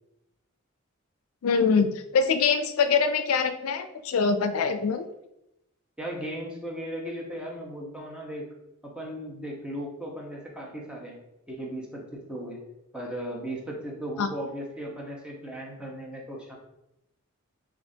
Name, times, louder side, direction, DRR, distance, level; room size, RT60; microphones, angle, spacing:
voice 1, 1.4-5.1 14.2-14.3, left 5 dB, 85° left, 9 dB, 0.4 m, -24 dB
voice 2, 6.0-8.5 8.8-11.2 11.5-12.6 12.9-16.6, equal, 5° right, -2 dB, 0.9 m, -36 dB
6.6 x 2.5 x 2.7 m, 0.87 s
head